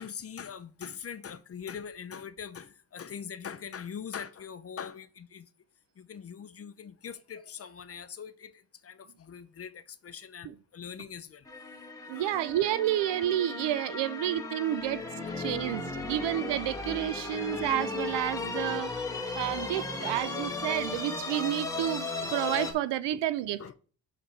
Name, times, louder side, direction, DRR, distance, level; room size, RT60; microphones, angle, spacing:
voice 1, 0.0-5.5 6.0-11.5 12.1-12.4 15.3-15.4 15.7-15.8 16.1-16.3 17.3-17.4 19.1-19.3 19.6-20.2 20.4-20.6 20.9-21.0 21.3-21.4 22.2-22.4 23.1-23.2 23.6-23.7, left 7 dB, 35° left, 0.6 m, -43 dB
sound 1, 11.5-22.7, left 3 dB, 10° left, 1.3 m, -36 dB
voice 2, 12.1-15.0 15.4-18.9 19.4-23.6, right 12 dB, 80° right, 0.5 m, -30 dB
6.2 x 5.0 x 4.2 m
cardioid pair, 100°, 42 cm